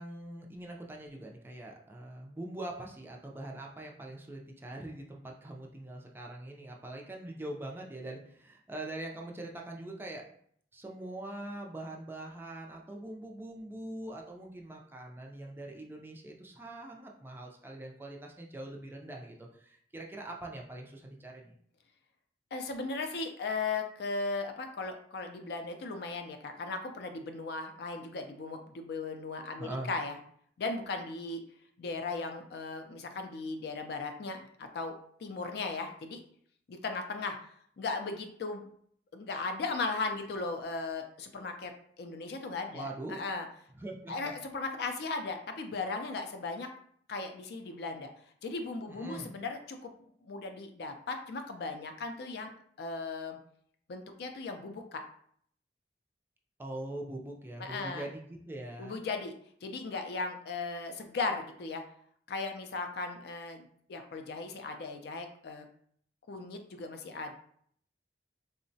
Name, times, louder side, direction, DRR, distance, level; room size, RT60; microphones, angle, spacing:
voice 1, 0.0-10.2 10.7-21.5 29.6-29.9 42.7-43.2 43.7-44.1 48.9-49.4 56.6-59.0, right 1 dB, 10° right, 0 dB, 0.3 m, -43 dB
voice 2, 22.5-30.2 30.6-31.4 31.8-34.9 35.2-36.2 36.7-37.4 37.8-38.7 39.1-41.7 42.0-43.5 44.1-46.7 47.1-48.1 48.4-49.9 50.2-52.5 52.8-53.4 53.9-55.0 57.6-58.1 58.8-59.3 59.6-61.8 62.3-65.7 66.3-67.3, left 3 dB, 65° left, 6 dB, 0.4 m, -37 dB
3.6 x 2.1 x 2.6 m, 0.63 s
head